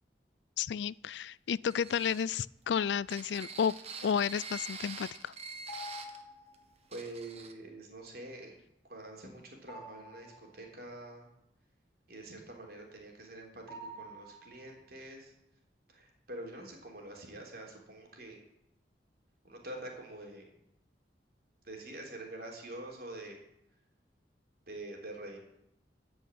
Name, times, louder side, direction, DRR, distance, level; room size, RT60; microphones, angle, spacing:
voice 1, 0.6-3.7 4.0-5.3, left 7 dB, 80° left, 22 dB, 0.4 m, -32 dB
sound 1, 1.7-6.2 6.5-6.6 6.9-7.5, right 4 dB, 35° right, 1.3 m, -45 dB
sound 2, 5.7-6.8 9.7-10.8 13.7-14.9, left 1 dB, 20° left, 2.7 m, -48 dB
voice 2, 6.9-8.6 8.9-11.3 12.1-15.3 15.9-18.4 19.4-20.4 21.6-23.4 24.7-25.4, right 1 dB, 60° right, 1 dB, 3.7 m, -46 dB
14.5 x 6.3 x 9.2 m, 0.81 s
head